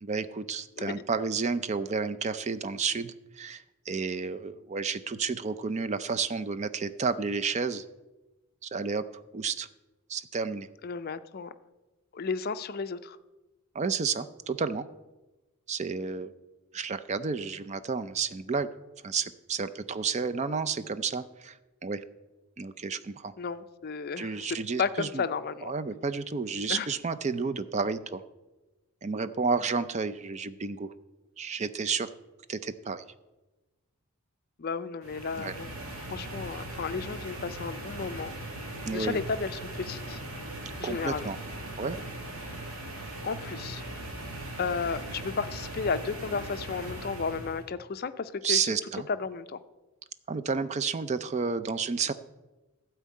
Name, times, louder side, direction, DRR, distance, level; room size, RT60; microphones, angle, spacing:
voice 1, 0.0-7.8 8.6-9.0 9.3-9.7 10.1-10.7 13.7-14.8 15.7-16.3 16.7-18.7 19.0-21.6 21.8-22.0 22.6-23.3 24.2-25.2 25.6-28.2 29.0-30.9 31.4-32.1 32.5-33.0 35.4-35.5 38.9-39.2 40.8-41.4 41.8-42.0 48.4-49.1 50.3-52.1, right 5 dB, 30° right, 13 dB, 0.4 m, -31 dB
voice 2, 10.8-11.5 12.1-13.2 23.4-25.7 26.7-26.9 34.6-35.7 36.0-38.3 38.9-40.2 40.8-41.3 43.2-43.8 44.6-48.6 49.1-49.6, left 5 dB, 45° left, 12 dB, 0.4 m, -33 dB
sound 1, 35.0-47.6, right 1 dB, 65° right, 2.0 m, -39 dB
12.0 x 4.5 x 8.3 m, 1.1 s
head